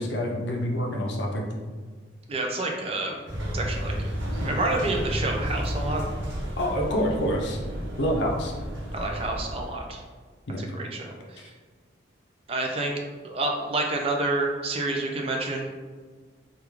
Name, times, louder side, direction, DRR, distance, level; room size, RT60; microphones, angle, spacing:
voice 1, 0.0-1.5 6.6-7.6 8.0-8.5 10.5-10.6 11.4-11.5, equal, 65° left, 0 dB, 0.5 m, -27 dB
voice 2, 2.3-3.2 3.5-4.1 4.4-6.0 8.9-10.0 10.6-11.4 12.5-15.8, right 2 dB, 30° right, 1 dB, 0.4 m, -29 dB
sound 1, 3.3-9.8, equal, 80° right, 0.8 m, -32 dB
3.4 x 2.4 x 3.1 m, 1.5 s
head